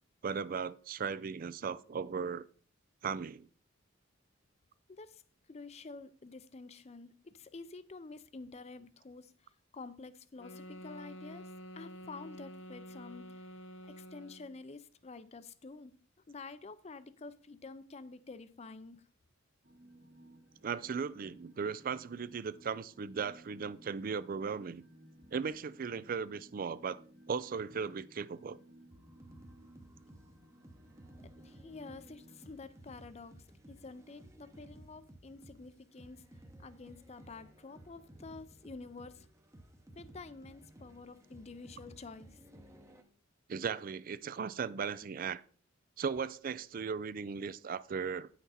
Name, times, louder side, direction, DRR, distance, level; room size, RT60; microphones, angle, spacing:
voice 1, 0.2-2.5 3.0-3.5 20.6-24.8 25.3-27.0 27.3-28.6 43.5-45.4 46.0-48.3, right 6 dB, 45° right, 0.4 m, -37 dB
voice 2, 4.9-5.2 5.5-13.5 13.8-15.9 16.3-19.0 31.4-36.2 36.6-39.3 40.0-42.4, left 3 dB, 35° left, 0.5 m, -49 dB
sound 1, 10.4-14.6, equal, 75° left, 0.9 m, -49 dB
sound 2, 19.6-32.6, right 1 dB, 65° right, 1.9 m, -59 dB
sound 3, 28.9-43.0, right 1 dB, 15° right, 0.8 m, -56 dB
9.3 x 6.0 x 4.2 m
head